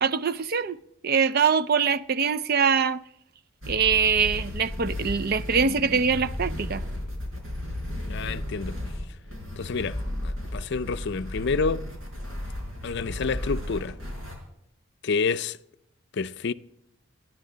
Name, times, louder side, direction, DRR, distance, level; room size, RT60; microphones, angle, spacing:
voice 1, 0.0-0.8 1.0-3.0 3.7-6.8, right 6 dB, 50° right, 0.4 m, -23 dB
sound 1, 3.6-14.4, left 1 dB, 75° right, 4.9 m, -34 dB
voice 2, 8.1-8.8 9.6-11.9 12.8-14.0 15.0-15.6 16.1-16.5, left 4 dB, 55° left, 0.5 m, -29 dB
29.0 x 10.0 x 3.9 m
head